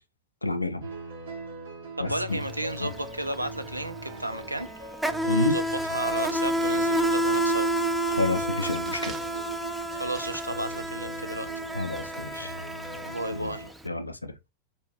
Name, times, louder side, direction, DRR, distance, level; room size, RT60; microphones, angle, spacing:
voice 1, 0.4-0.9 2.0-2.4 2.8-2.9 5.3-5.6 8.2-9.1 11.7-12.5 13.3-13.5 13.8-14.3, left 2 dB, 85° left, 0.5 m, -29 dB
sound 1, 0.8-13.7, right 2 dB, 65° right, 1.3 m, -42 dB
voice 2, 2.0-4.9 5.2-7.7 10.0-11.6 13.1-13.7, right 1 dB, 85° right, 0.4 m, -33 dB
Insect, 2.3-2.5 2.8-13.8, right 1 dB, 5° right, 0.4 m, -29 dB
sound 2, 5.6-13.1, right 4 dB, 20° right, 0.9 m, -48 dB
4.4 x 2.7 x 2.9 m
figure-of-eight pair, 90°, 0 cm